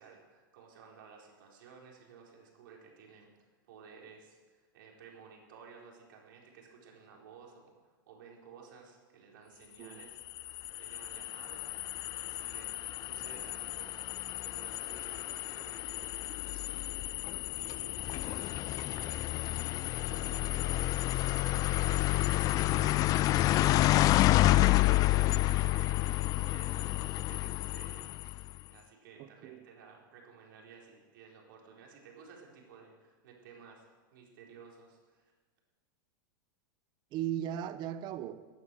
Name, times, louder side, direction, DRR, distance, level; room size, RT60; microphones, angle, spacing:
voice 1, 0.0-12.7 13.0-14.1 14.4-24.2 24.5-26.0 26.3-33.9 34.1-35.3, right 6 dB, 70° right, 4.3 m, -55 dB
sound 1, 10.0-28.5, left 17 dB, 30° left, 0.3 m, -30 dB
voice 2, 29.2-29.6 37.1-38.4, right 11 dB, 40° right, 1.0 m, -37 dB
15.5 x 9.5 x 7.7 m
hypercardioid pair, 125°, 12 cm